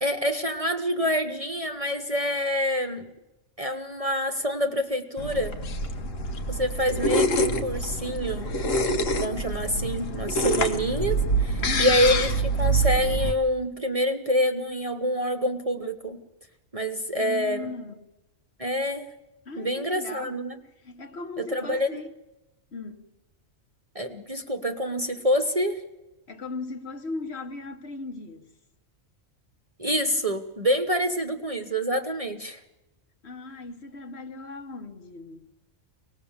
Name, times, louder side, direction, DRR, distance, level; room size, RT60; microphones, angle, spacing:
voice 1, 0.0-3.1 3.6-5.6 6.5-8.5 9.2-12.3 12.6-16.2 16.7-17.7 18.6-19.1 19.6-20.6 21.4-22.0 23.9-25.8 29.8-32.6, equal, 30° right, 0.9 m, -27 dB
sound 1, 5.2-13.3, right 1 dB, 75° left, 1.7 m, -26 dB
voice 2, 11.6-12.0 17.1-18.0 19.4-20.4 20.8-22.1 22.7-23.1 26.3-28.5 33.2-35.5, left 3 dB, 55° left, 1.6 m, -37 dB
24.5 x 19.0 x 7.3 m
omnidirectional pair, 1.3 m